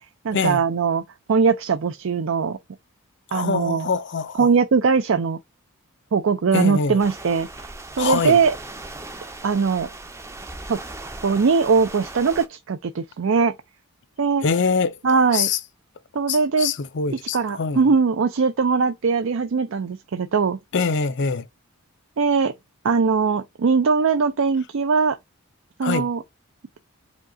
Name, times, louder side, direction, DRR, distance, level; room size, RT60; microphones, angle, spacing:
voice 1, 0.2-1.0 1.3-2.6 3.3-3.9 4.3-5.4 6.1-8.5 9.4-9.9 10.7-10.8 11.2-13.5 14.2-14.4 15.0-15.5 16.1-16.7 17.1-20.6 22.2-22.5 22.8-25.2 25.8-26.2, right 5 dB, 60° right, 0.4 m, -20 dB
voice 2, 3.3-4.5 6.5-7.0 8.0-8.4 14.4-15.0 15.3-15.6 16.3-17.8 20.7-21.4 25.8-26.1, left 5 dB, 50° left, 0.5 m, -24 dB
sound 1, 7.0-12.5, right 2 dB, 10° right, 0.6 m, -38 dB
5.1 x 2.3 x 3.7 m
head